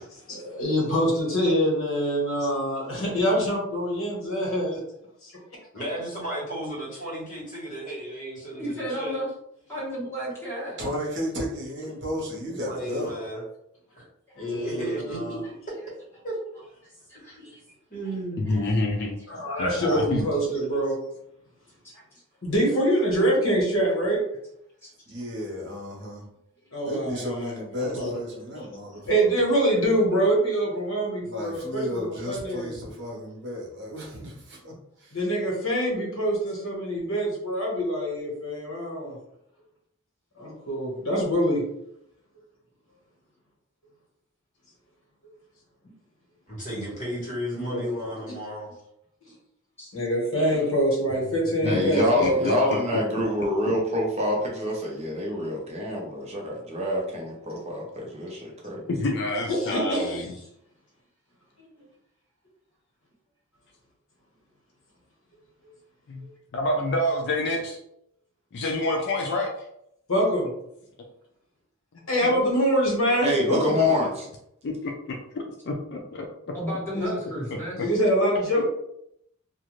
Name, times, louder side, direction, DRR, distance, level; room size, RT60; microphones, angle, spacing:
voice 1, 0.3-4.8 5.2-5.3 14.4-15.4 18.5-18.6 19.3-21.0 22.4-24.2 26.7-28.1 28.6-28.7 29.1-32.7 35.1-39.1 40.4-41.6 47.5-47.8 49.9-52.4 59.5-60.1 70.1-70.5 72.1-73.7 76.9-77.1 77.8-78.6, equal, 70° left, -3 dB, 1.2 m, -25 dB
voice 2, 5.7-9.2 12.6-13.4 13.9-14.1 14.5-15.2 16.2-16.3 17.1-17.4 17.9-18.5 46.5-48.7, right 1 dB, 40° left, -5 dB, 1.3 m, -34 dB
voice 3, 8.6-9.3 9.7-10.8 14.3-14.5 17.3-17.6 18.5-18.7 21.9-22.0 49.8-49.9 76.5-77.8, equal, 10° left, -9 dB, 1.4 m, -33 dB
voice 4, 10.8-13.1 25.1-26.2 26.8-29.3 31.2-35.2, equal, 55° right, -3 dB, 1.0 m, -33 dB
voice 5, 18.4-19.2 19.6-20.3 51.6-52.5 59.0-60.3 66.1-66.3 66.5-67.8 68.5-69.7 72.2-72.3 74.6-76.3 78.6-78.7, left 1 dB, 55° left, 0 dB, 0.4 m, -28 dB
voice 6, 51.6-58.8 73.2-74.3, left 1 dB, 30° right, -2 dB, 0.6 m, -26 dB
2.5 x 2.4 x 3.0 m, 0.76 s
head